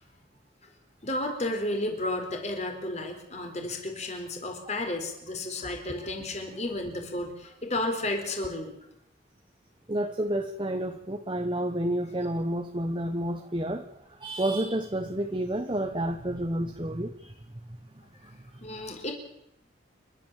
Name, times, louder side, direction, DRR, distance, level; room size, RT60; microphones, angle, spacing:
voice 1, 1.0-8.7 18.6-19.1, left 1 dB, 35° left, 4 dB, 4.3 m, -32 dB
voice 2, 9.9-13.9 14.2-17.3, right 1 dB, 25° right, 5 dB, 1.1 m, -30 dB
29.5 x 12.5 x 7.5 m, 0.83 s
head